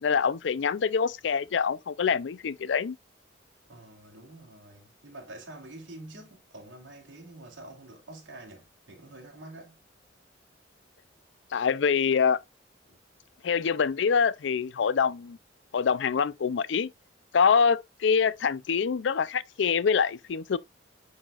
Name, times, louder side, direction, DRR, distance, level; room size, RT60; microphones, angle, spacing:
voice 1, 0.0-3.0 11.5-12.4 13.4-15.4 15.7-16.9 17.3-20.6, left 6 dB, 70° left, 0.4 m, -25 dB
voice 2, 3.7-9.8 12.9-13.0, right 2 dB, 75° right, 3.3 m, -47 dB
10.0 x 4.3 x 2.4 m
head